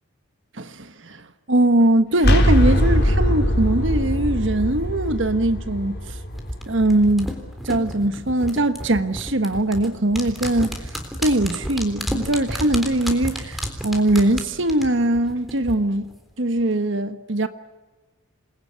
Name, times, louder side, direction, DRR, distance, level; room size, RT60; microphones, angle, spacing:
voice 1, 0.6-5.9 6.7-7.3 7.6-10.8 11.2-16.1 16.4-17.5, right 1 dB, 60° right, 1.3 m, -21 dB
sound 1, 2.2-7.9, equal, 50° left, 4.3 m, -21 dB
sound 2, 6.3-15.7 16.0-16.1, equal, ahead, 3.6 m, -31 dB
28.0 x 21.0 x 9.6 m
head